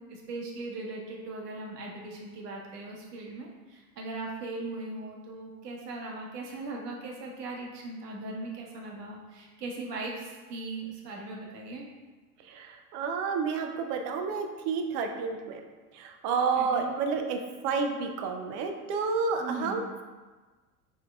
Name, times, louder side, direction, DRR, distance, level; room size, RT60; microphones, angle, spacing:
voice 1, 0.1-11.9 16.5-16.9 19.4-19.8, right 2 dB, 75° right, 0 dB, 1.0 m, -39 dB
voice 2, 12.5-15.6 15.9-20.0, right 5 dB, 40° right, 4 dB, 0.5 m, -30 dB
4.3 x 3.7 x 2.3 m, 1.3 s
hypercardioid pair, 90°, 48 cm